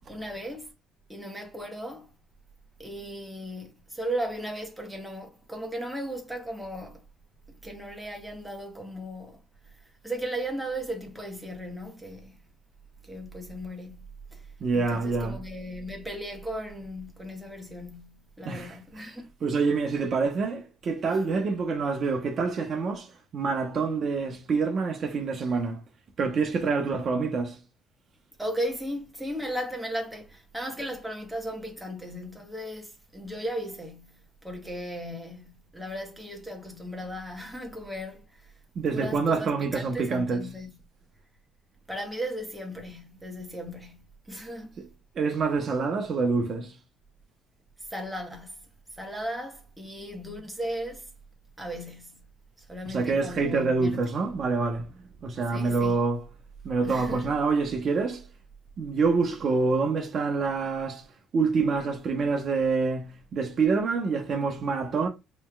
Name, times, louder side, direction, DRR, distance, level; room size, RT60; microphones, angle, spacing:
voice 1, 0.1-0.7 1.1-2.1 2.8-7.0 7.5-9.4 10.0-12.3 13.0-14.0 14.3-14.4 14.7-19.3 28.4-38.5 38.9-40.7 41.9-44.8 47.9-48.5 49.0-51.1 51.6-52.2 52.7-54.0 55.5-56.0 56.8-57.3, equal, 5° right, 1.1 m, -36 dB
voice 2, 14.6-15.4 18.4-19.1 19.4-25.8 26.2-27.6 38.8-40.5 44.8-44.9 45.2-46.7 52.8-54.9 55.2-56.3 56.6-58.2 58.8-61.0 61.3-65.1, right 4 dB, 45° right, 0.9 m, -26 dB
5.3 x 3.2 x 2.3 m
cardioid pair, 115°, 0 cm